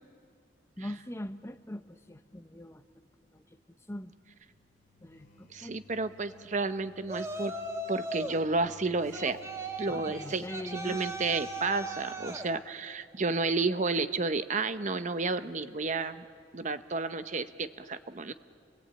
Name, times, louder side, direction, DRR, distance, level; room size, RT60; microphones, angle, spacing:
voice 1, 0.8-2.8 3.3-3.4 3.9-4.1 5.0-5.8 9.9-11.0, left 1 dB, 15° left, 10 dB, 0.7 m, -41 dB
sound 1, 4.4-12.1, left 2 dB, 40° left, 3.9 m, -57 dB
voice 2, 5.5-7.5 7.9-9.4 9.8-10.4 10.7-16.2 16.5-18.3, right 3 dB, 40° right, 11 dB, 0.8 m, -31 dB
Yell, 7.1-8.4 9.1-12.5, right 2 dB, 15° right, 1.5 m, -38 dB
28.5 x 22.0 x 8.8 m, 2.2 s
head